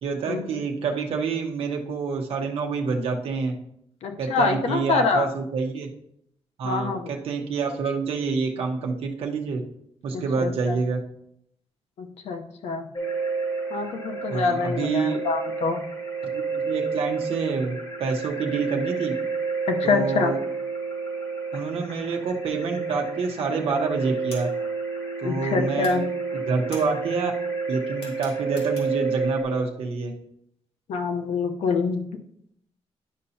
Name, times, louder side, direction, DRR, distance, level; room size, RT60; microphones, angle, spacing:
voice 1, 0.0-3.5 4.2-5.9 6.6-9.6 10.0-11.0 14.3-15.2 16.3-19.1 19.8-20.4 21.5-24.5 25.2-26.0 26.5-27.3 27.7-30.1, right 4 dB, 60° right, 1 dB, 1.0 m, -27 dB
voice 2, 4.0-5.3 6.6-7.1 10.1-10.8 12.0-12.9 13.7-15.9 19.7-20.3 25.2-26.1 30.9-32.0, left 4 dB, 80° left, 5 dB, 0.9 m, -25 dB
sound 1, 12.9-29.4, right 4 dB, 45° left, 2.2 m, -30 dB
sound 2, 23.5-23.6 23.8-25.5 25.8-29.2, left 1 dB, 60° left, 2.3 m, -44 dB
10.5 x 5.4 x 2.8 m, 0.73 s
wide cardioid pair, 170°, 11 cm